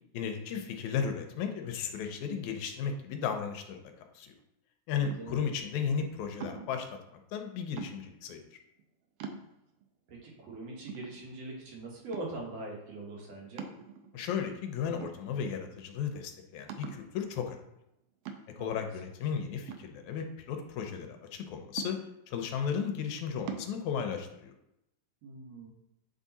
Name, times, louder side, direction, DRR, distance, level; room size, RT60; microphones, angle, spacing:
voice 1, 0.1-3.8 4.2-4.3 4.9-8.4 14.1-17.6 18.6-22.0 22.3-24.5, left 7 dB, 90° left, 5 dB, 2.1 m, -35 dB
sound 1, 5.0-5.5 6.4-6.8 7.8-8.3 8.8-8.9 9.2-9.8 10.4-10.5 10.9-11.6 12.1-12.5 13.6-14.3 15.0-15.7 16.0-16.1 16.7-17.1 18.3-18.7 19.7-20.6 21.8-22.4 23.5-23.7, right 6 dB, 80° right, 1.3 m, -43 dB
voice 2, 5.2-5.5 10.1-13.7 18.6-18.7 25.2-25.7, right 2 dB, 65° right, -2 dB, 2.5 m, -42 dB
8.1 x 3.6 x 4.1 m, 0.85 s
omnidirectional pair, 3.3 m